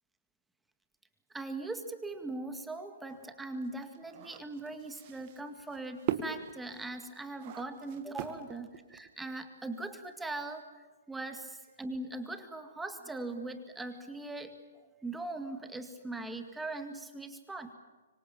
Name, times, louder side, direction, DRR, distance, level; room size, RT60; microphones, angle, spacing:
voice 1, 1.3-14.6 14.8-17.7, right 2 dB, 5° right, 7 dB, 2.0 m, -40 dB
sound 1, 3.1-9.3, right 11 dB, 40° right, 2.0 m, -40 dB
25.0 x 25.0 x 7.3 m, 1.3 s
hypercardioid pair, 135°, 0 cm